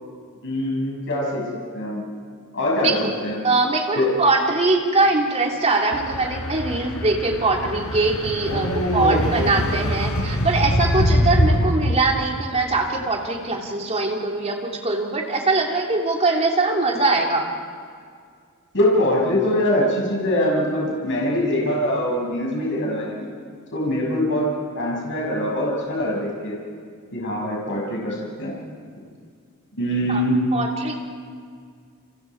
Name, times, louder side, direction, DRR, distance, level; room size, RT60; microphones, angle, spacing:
voice 1, 0.4-1.4 1.7-2.0 2.5-3.4 4.0-4.1 8.5-9.7 18.7-23.3 23.7-24.5 24.7-26.5 27.1-28.5 29.8-30.4, left 1 dB, 60° left, -3 dB, 6.3 m, -23 dB
voice 2, 2.8-3.1 3.4-17.5 30.1-30.2 30.5-31.0, right 3 dB, 30° right, 0 dB, 3.1 m, -22 dB
sound 1, 5.9-11.9, equal, 80° left, 4.5 m, -23 dB
30.0 x 26.0 x 4.8 m, 2.1 s
head